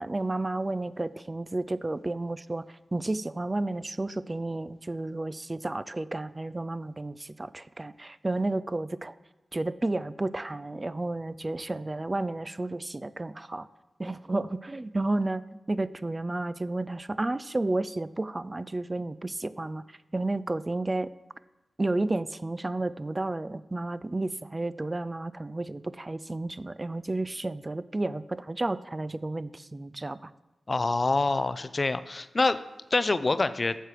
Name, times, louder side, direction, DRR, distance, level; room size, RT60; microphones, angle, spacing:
voice 1, 0.0-2.7 2.9-9.1 9.5-13.7 14.0-15.4 15.7-19.8 20.1-21.1 21.8-30.3, right 2 dB, 30° right, 15 dB, 0.4 m, -31 dB
voice 2, 30.7-32.6 32.9-33.8, left 3 dB, 40° left, 13 dB, 0.5 m, -26 dB
7.5 x 4.9 x 6.8 m, 1.1 s
cardioid pair, 55°, 0 cm